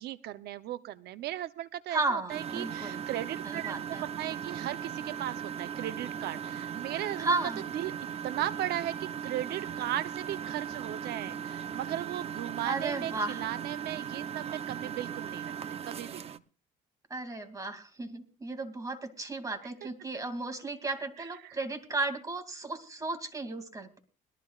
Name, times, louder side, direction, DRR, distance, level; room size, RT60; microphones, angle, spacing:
voice 1, 0.0-7.4 7.7-7.9 8.2-15.5 15.8-16.4 19.8-19.9 21.4-21.5, right 13 dB, 75° right, 12 dB, 0.7 m, -37 dB
voice 2, 1.9-3.1 3.4-4.0 7.2-7.6 12.6-13.4 17.1-24.0, right 3 dB, 20° right, 7 dB, 2.4 m, -34 dB
Engine, 2.3-16.4, right 8 dB, 35° right, 0.7 m, -38 dB
21.5 x 13.5 x 2.4 m, 0.37 s
cardioid pair, 110°, 17 cm